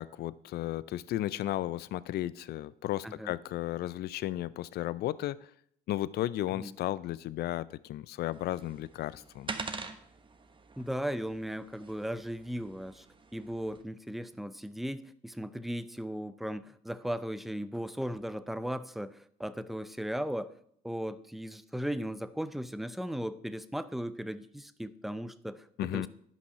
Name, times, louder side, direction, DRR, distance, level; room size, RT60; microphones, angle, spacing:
voice 1, 0.0-5.5 5.9-9.5 25.8-26.1, left 14 dB, 55° left, 18 dB, 0.4 m, -34 dB
voice 2, 3.0-3.3 6.6-6.7 10.8-13.1 13.3-20.5 20.8-26.1, equal, ahead, 13 dB, 0.6 m, -37 dB
sound 1, 8.3-13.8, right 4 dB, 25° right, 1.1 m, -45 dB
11.0 x 5.4 x 5.6 m, 0.68 s
supercardioid pair, 70°, 19 cm